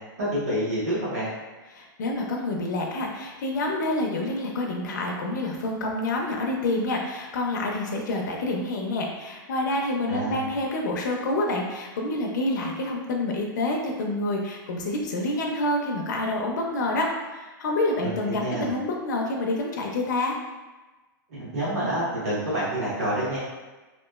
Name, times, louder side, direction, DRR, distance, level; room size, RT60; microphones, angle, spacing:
voice 1, 0.2-1.3 10.1-10.5 18.0-18.7 21.3-23.4, right 1 dB, 45° right, -9 dB, 1.4 m, -28 dB
voice 2, 1.7-20.4, left 2 dB, 55° left, 0 dB, 0.4 m, -28 dB
2.9 x 2.3 x 2.3 m, 1.2 s
supercardioid pair, 180°, 11 cm